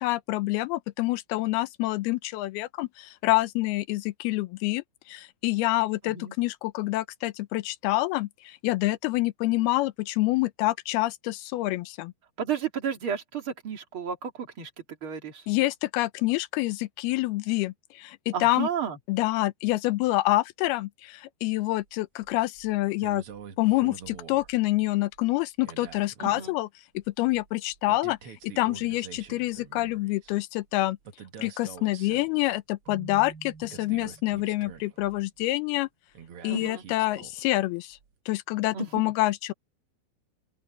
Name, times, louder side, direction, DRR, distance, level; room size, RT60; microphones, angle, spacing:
voice 1, 0.0-12.1 15.5-18.7 19.1-23.2 23.6-26.7 26.9-31.0 31.4-35.9 36.4-38.0 38.3-39.5, left 19 dB, 80° left, 2.7 m, -27 dB
voice 2, 12.4-14.7 15.0-15.4 18.3-19.0 26.2-26.5 36.5-36.8 38.7-39.0, right 8 dB, 35° right, 3.1 m, -32 dB
sound 1, 22.2-22.7 23.0-24.8 25.1-25.2 25.6-26.6 27.0-30.4 31.1-32.6 32.9-33.0 33.2-35.5 36.1-37.6 37.9-38.1, right 8 dB, 55° right, 1.6 m, -46 dB
Keyboard (musical), 32.9-34.7, right 5 dB, 80° right, 4.2 m, -47 dB
open air
omnidirectional pair, 4.5 m